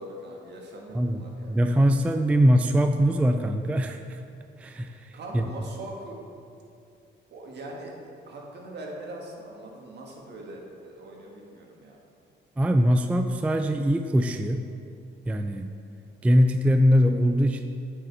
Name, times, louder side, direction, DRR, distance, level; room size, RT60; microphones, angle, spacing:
voice 1, 0.0-1.6 5.1-6.2 7.3-12.0, right 1 dB, 60° right, -1 dB, 1.6 m, -41 dB
voice 2, 0.9-4.2 4.6-5.4 12.6-14.6 15.3-15.7 16.2-17.6, equal, 5° right, 6 dB, 0.3 m, -22 dB
8.9 x 5.0 x 4.6 m, 2.5 s
cardioid pair, 90°, 20 cm